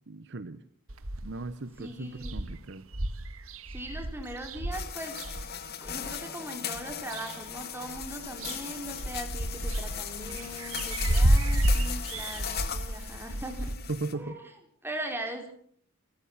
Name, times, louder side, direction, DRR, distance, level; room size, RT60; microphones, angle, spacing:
voice 1, 0.1-0.6 1.2-2.9 13.9-14.4, right 3 dB, 55° right, 13 dB, 0.9 m, -37 dB
sound 1, 0.9-1.5 1.9-2.0 2.2-6.2 6.7-7.6 7.9-13.7, right 1 dB, 70° right, 1.7 m, -30 dB
voice 2, 1.8-2.5 3.7-5.2 5.8-13.8 14.1-14.4 14.8-15.5, right 1 dB, 10° right, 3 dB, 4.4 m, -40 dB
sound 2, 4.7-14.1, left 9 dB, 45° left, 1.9 m, -38 dB
29.0 x 14.0 x 7.3 m, 0.63 s
head